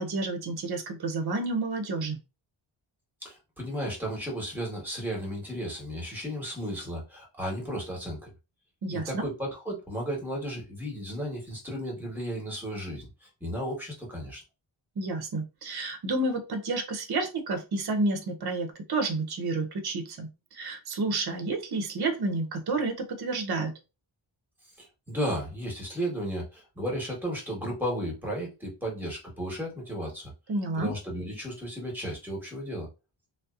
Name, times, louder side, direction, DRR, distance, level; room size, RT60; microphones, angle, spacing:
voice 1, 0.0-2.2 8.8-9.3 15.0-23.7 30.5-30.9, right 3 dB, 50° right, 5 dB, 0.7 m, -30 dB
voice 2, 3.2-8.3 8.9-14.4 24.8-30.3 30.8-32.9, equal, 5° right, -1 dB, 1.2 m, -34 dB
2.7 x 2.0 x 2.3 m, 0.27 s
wide cardioid pair, 80°, 49 cm